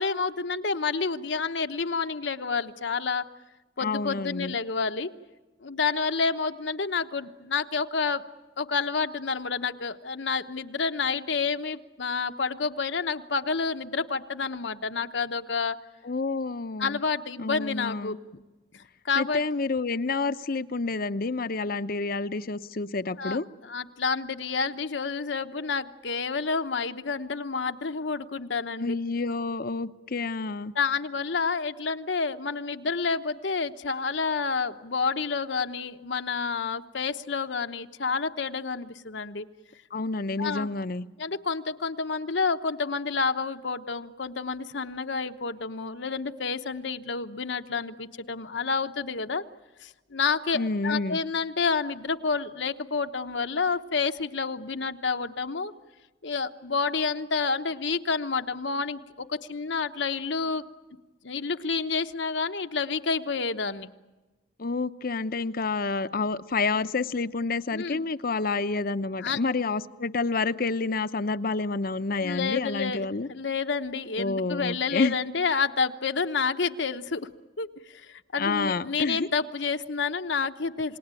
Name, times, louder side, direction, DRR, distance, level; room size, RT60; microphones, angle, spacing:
voice 1, 0.0-3.3 3.8-5.1 5.6-8.2 8.6-15.8 16.8-18.2 18.7-19.4 23.2-28.9 30.7-39.5 40.4-40.7 41.2-49.4 49.8-55.7 56.2-60.6 61.2-63.9 67.7-68.0 69.2-69.4 72.1-77.3 77.6-81.0, left 5 dB, 75° left, 1.0 m, -29 dB
voice 2, 3.8-4.6 16.0-17.0 17.4-18.2 19.2-23.5 28.8-30.7 39.9-41.1 50.5-51.2 64.6-73.3 74.2-75.1 78.4-79.3, left 3 dB, 50° left, 0.8 m, -29 dB
28.5 x 19.5 x 9.0 m
head